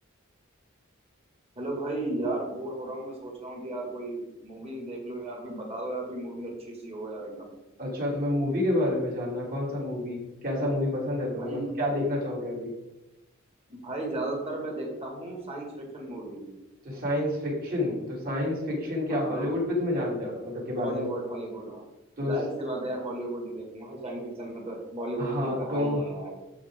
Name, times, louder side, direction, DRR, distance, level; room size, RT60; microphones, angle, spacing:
voice 1, 1.6-7.5 11.4-11.7 13.7-16.5 19.1-19.6 20.8-21.8 22.2-26.3, right 2 dB, 30° right, 0 dB, 2.2 m, -35 dB
voice 2, 7.8-12.7 16.8-21.0 22.2-22.3 25.2-26.0, left 1 dB, 45° right, -3 dB, 3.2 m, -29 dB
13.0 x 4.9 x 3.8 m, 0.99 s
head